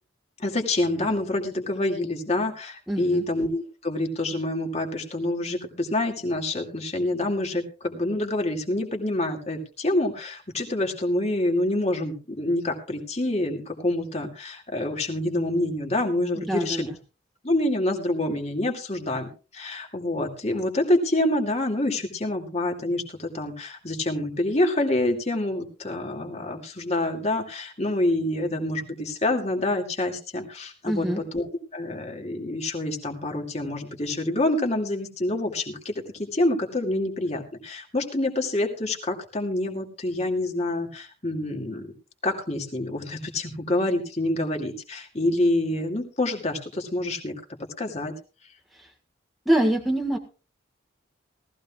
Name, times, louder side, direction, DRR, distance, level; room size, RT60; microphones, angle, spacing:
voice 1, 0.4-16.9 17.4-31.5 31.7-41.9 42.2-47.4 47.8-48.1, left 1 dB, 30° left, 2 dB, 2.3 m, -27 dB
voice 2, 2.9-3.2 16.4-16.8 30.9-31.2 49.4-50.2, right 1 dB, ahead, 2 dB, 1.6 m, -24 dB
18.5 x 14.5 x 2.4 m, 0.32 s
head